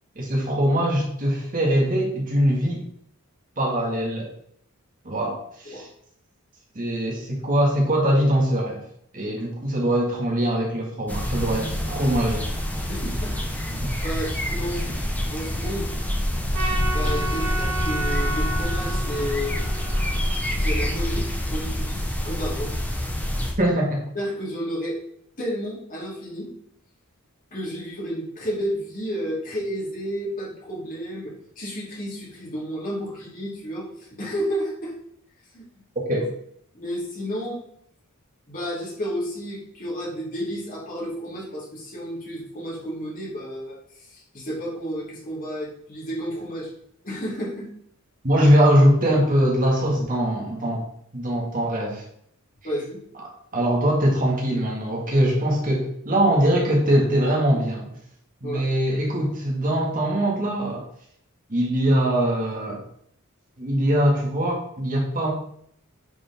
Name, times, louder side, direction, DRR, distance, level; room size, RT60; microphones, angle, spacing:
voice 1, 0.2-2.8 3.6-4.3 5.0-5.9 6.8-8.9 9.1-12.5 13.8-13.9 23.6-24.0 36.1-36.3 48.2-50.9 51.1-52.0 53.5-57.9 58.4-60.8 61.5-62.8 63.6-65.3, equal, 40° right, -1 dB, 2.0 m, -22 dB
sound 1, 11.1-23.5, equal, 5° left, 1.1 m, -26 dB
voice 2, 12.9-13.4 13.7-14.8 15.3-15.9 16.9-19.6 20.6-22.7 24.1-25.0 25.4-26.5 27.5-33.9 34.2-34.9 35.5-35.7 36.7-37.6 38.5-46.7 47.0-47.7 52.6-53.0 58.4-58.7, equal, 40° left, -5 dB, 3.1 m, -31 dB
Trumpet, 16.5-20.9, right 2 dB, 90° right, 2.7 m, -32 dB
9.8 x 5.4 x 3.6 m, 0.67 s
head